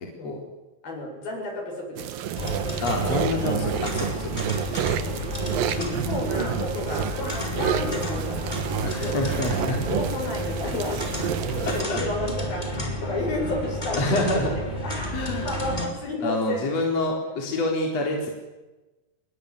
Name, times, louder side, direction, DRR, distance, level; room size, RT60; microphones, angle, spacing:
voice 1, 0.2-0.5 0.8-2.1 2.5-2.8 3.3-4.0 4.9-5.2 5.8-8.6 9.0-9.2 9.5-11.3 11.5-12.7 13.0-16.7 17.2-17.4, left 2 dB, 65° left, 1 dB, 9.4 m, -32 dB
sound 1, 2.0-11.8, right 9 dB, 70° right, 2.9 m, -30 dB
sound 2, 2.4-15.9, equal, 10° left, 5.2 m, -31 dB
voice 2, 2.8-4.5 8.8-9.8 11.4-12.0 14.0-14.5 15.1-15.5 16.2-18.3, left 2 dB, 40° left, 0 dB, 5.1 m, -27 dB
26.0 x 23.0 x 9.9 m, 1.1 s
omnidirectional pair, 4.6 m